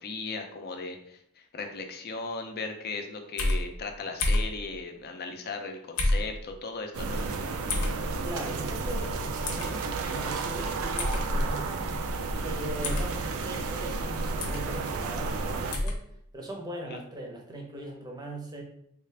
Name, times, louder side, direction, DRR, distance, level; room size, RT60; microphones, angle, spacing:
voice 1, 0.0-7.2 16.9-17.0, left 3 dB, 45° left, 5 dB, 0.5 m, -37 dB
sound 1, 3.4-3.6 4.2-4.5 6.0-6.3 7.7-7.9 9.4-9.7 11.0-11.2 12.8-13.1 14.4-14.6 15.7-16.0, left 1 dB, 80° left, 0.7 m, -27 dB
sound 2, 6.9-15.8, right 3 dB, 65° right, 0.4 m, -32 dB
voice 2, 8.2-11.7 12.4-16.0 16.3-18.6, right 1 dB, 20° right, 0 dB, 0.7 m, -39 dB
3.6 x 2.4 x 3.3 m, 0.71 s
head